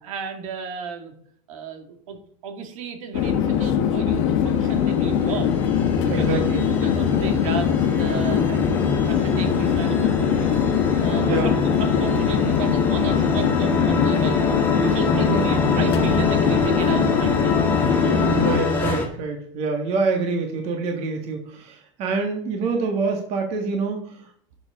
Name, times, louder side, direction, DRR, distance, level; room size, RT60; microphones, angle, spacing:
voice 1, 0.0-1.1 1.5-2.2 2.4-5.6 6.0-8.8 9.1-10.6 11.0-14.4 14.8-17.6, right 6 dB, 90° right, 5 dB, 2.2 m, -34 dB
Chatter / Fixed-wing aircraft airplane, 3.1-18.6, left 8 dB, 60° left, 1.5 m, -22 dB
sound 1, 4.4-19.1, left 2 dB, 10° left, 2.0 m, -26 dB
voice 2, 6.1-6.7 11.2-11.5 15.1-15.4 18.3-24.3, right 4 dB, 40° right, 3 dB, 1.7 m, -26 dB
12.5 x 6.8 x 3.7 m, 0.64 s
supercardioid pair, 165°, 17 cm